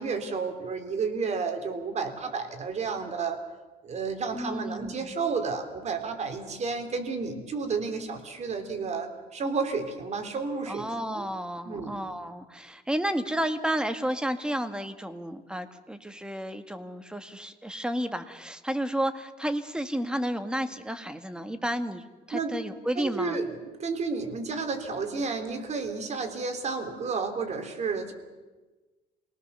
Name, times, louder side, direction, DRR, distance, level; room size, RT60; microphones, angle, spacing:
voice 1, 0.0-3.4 3.8-10.9 11.1-11.3 11.6-12.0 22.3-22.6 23.0-28.1, right 4 dB, 40° right, 7 dB, 3.7 m, -31 dB
voice 2, 4.3-5.1 10.7-23.4, right 1 dB, 5° right, 9 dB, 1.8 m, -32 dB
28.0 x 19.0 x 6.9 m, 1.2 s
cardioid pair, 110°, 17 cm